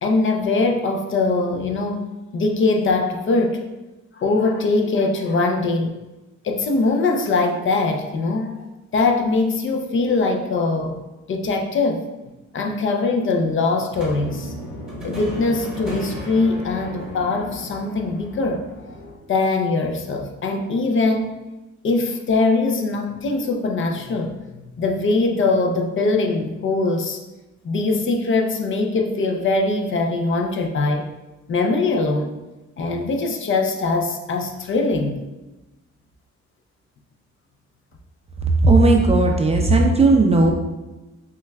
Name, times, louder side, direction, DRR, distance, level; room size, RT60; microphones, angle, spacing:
voice 1, 0.0-2.0 2.3-3.6 4.1-5.9 6.4-8.6 8.9-10.9 11.3-12.0 12.5-14.5 15.0-18.9 19.3-21.4 21.8-27.2 27.6-31.1 31.5-32.3 32.8-35.2, left 3 dB, 40° left, 3 dB, 0.5 m, -22 dB
sound 1, 13.9-19.2, right 1 dB, ahead, 1.1 m, -34 dB
voice 2, 38.6-40.5, right 2 dB, 20° right, 1 dB, 0.4 m, -15 dB
5.6 x 2.3 x 2.2 m, 1.1 s
cardioid pair, 90°, 30 cm